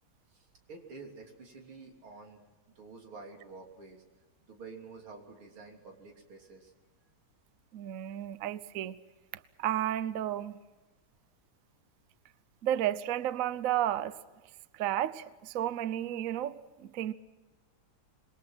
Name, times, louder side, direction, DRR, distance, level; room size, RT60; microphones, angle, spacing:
voice 1, 0.3-2.4 2.8-4.0 4.4-6.7, right 4 dB, 75° right, 4.2 m, -49 dB
voice 2, 7.7-9.0 9.6-10.6 12.6-14.2 14.7-17.1, right 12 dB, 60° right, 0.9 m, -32 dB
26.5 x 22.5 x 6.1 m
omnidirectional pair, 2.3 m